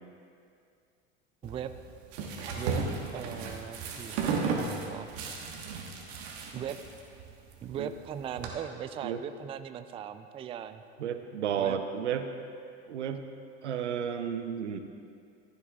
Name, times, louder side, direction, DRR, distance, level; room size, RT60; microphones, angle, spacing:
sound 1, 1.4-8.5, right 4 dB, 65° right, 1.5 m, -35 dB
voice 1, 2.5-2.8 3.1-5.1 6.5-6.8 7.6-10.8 11.5-11.8, right 9 dB, 20° right, 11 dB, 0.3 m, -38 dB
voice 2, 11.0-12.2 12.9-13.2 13.6-14.8, right 8 dB, 85° right, 8 dB, 0.7 m, -32 dB
15.0 x 9.7 x 2.4 m, 2.4 s
hypercardioid pair, 80°, 34 cm